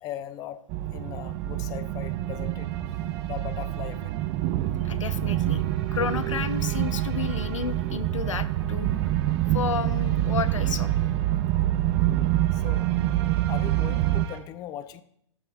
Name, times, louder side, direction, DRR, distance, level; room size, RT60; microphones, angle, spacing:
voice 1, 0.0-0.6 0.9-2.7 3.2-4.1 12.5-12.9 13.5-15.0, left 11 dB, 25° left, 12 dB, 0.6 m, -38 dB
sound 1, 0.7-14.2, right 14 dB, 30° right, 0.4 m, -26 dB
sound 2, 1.0-14.4, right 8 dB, 55° right, 1.9 m, -47 dB
voice 2, 4.8-5.6 5.9-8.9 9.5-10.9, left 7 dB, 85° left, 12 dB, 0.9 m, -31 dB
13.5 x 11.5 x 2.4 m, 0.72 s
hypercardioid pair, 135°, 16 cm